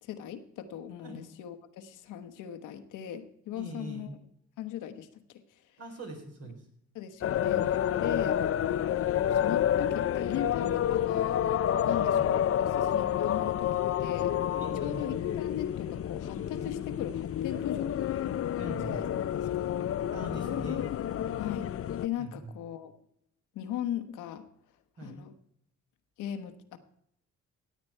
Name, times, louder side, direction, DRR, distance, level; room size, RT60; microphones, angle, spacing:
voice 1, 0.0-4.1 4.6-5.6 6.9-11.5 11.8-14.3 14.8-18.1 18.9-19.0 19.6-19.7 21.4-21.7 22.0-22.9 23.5-24.5 25.0-25.3 26.2-26.8, left 10 dB, 90° left, 8 dB, 1.2 m, -39 dB
voice 2, 3.5-4.1 5.8-6.5 8.0-8.2 11.9-12.2 14.6-15.0 18.6-19.0 20.1-20.8 22.2-22.3 25.0-25.2, right 1 dB, 55° right, 2 dB, 4.3 m, -42 dB
sound 1, 7.2-22.1, left 10 dB, 50° left, 0.6 m, -29 dB
16.5 x 8.7 x 4.5 m, 0.73 s
cardioid pair, 90°, 30 cm